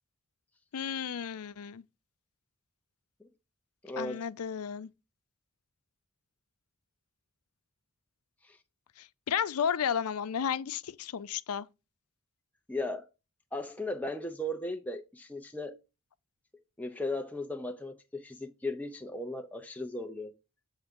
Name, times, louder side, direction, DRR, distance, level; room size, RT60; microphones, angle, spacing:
voice 1, 0.7-1.8 4.0-4.9 9.0-11.7, left 8 dB, 85° left, 0.5 m, -33 dB
voice 2, 3.8-4.2 8.4-8.6 12.7-13.1 13.5-15.7 16.8-17.9 18.2-20.3, left 1 dB, 5° left, 0.5 m, -36 dB
7.9 x 3.6 x 5.2 m
head